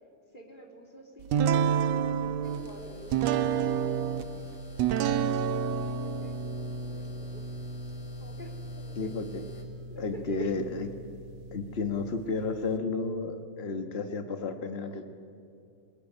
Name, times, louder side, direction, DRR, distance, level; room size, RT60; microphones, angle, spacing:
voice 1, 0.3-4.6 5.4-7.5 8.2-9.1 9.9-10.5, equal, 15° left, 1 dB, 3.1 m, -49 dB
sound 1, 1.3-12.8, right 7 dB, 70° right, 1.8 m, -31 dB
sound 2, 2.4-9.6, right 1 dB, 80° left, 4.1 m, -54 dB
voice 2, 8.9-9.4 10.0-10.9 11.5-15.1, left 4 dB, 65° left, 7 dB, 0.6 m, -32 dB
27.5 x 19.5 x 9.9 m, 2.6 s
omnidirectional pair, 3.4 m